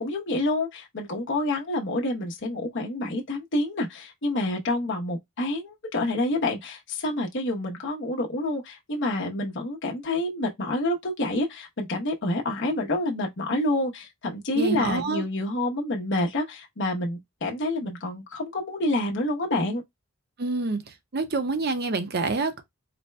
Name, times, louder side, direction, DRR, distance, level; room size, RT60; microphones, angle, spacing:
voice 1, 0.0-19.8, left 1 dB, 55° left, 0.9 m, -28 dB
voice 2, 14.5-15.2 20.4-22.6, right 3 dB, 45° right, 0.7 m, -27 dB
4.2 x 2.2 x 3.2 m
head